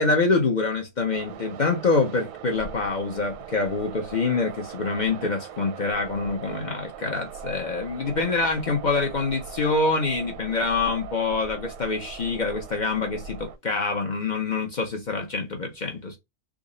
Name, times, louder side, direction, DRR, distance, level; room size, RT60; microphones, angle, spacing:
voice 1, 0.0-16.2, left 3 dB, 70° left, 0.4 m, -25 dB
sound 1, 1.1-13.6, right 7 dB, 85° right, 1.2 m, -40 dB
3.7 x 2.0 x 3.7 m
omnidirectional pair, 1.7 m